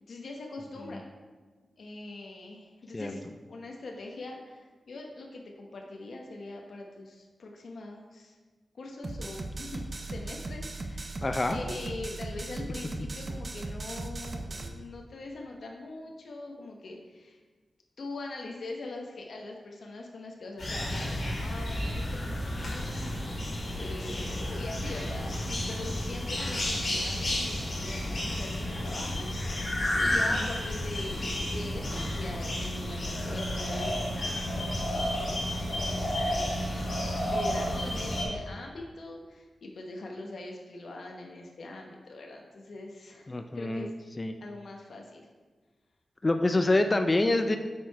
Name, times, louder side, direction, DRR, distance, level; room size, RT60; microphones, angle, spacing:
voice 1, 0.1-1.1 1.8-3.2 3.5-8.4 8.7-11.2 11.5-17.4 18.0-34.3 34.9-36.0 36.3-43.9 44.4-45.3, left 2 dB, 70° left, 1 dB, 0.9 m, -42 dB
sound 1, 9.0-14.7, right 2 dB, 35° right, 0.6 m, -38 dB
voice 2, 11.2-11.6 30.1-30.2 43.3-43.9 44.2-44.3 46.2-47.6, left 2 dB, 25° left, 7 dB, 0.4 m, -26 dB
sound 2, 20.6-38.2, left 1 dB, 50° left, 2.3 m, -31 dB
7.4 x 4.7 x 4.5 m, 1.3 s
wide cardioid pair, 125°, 0 cm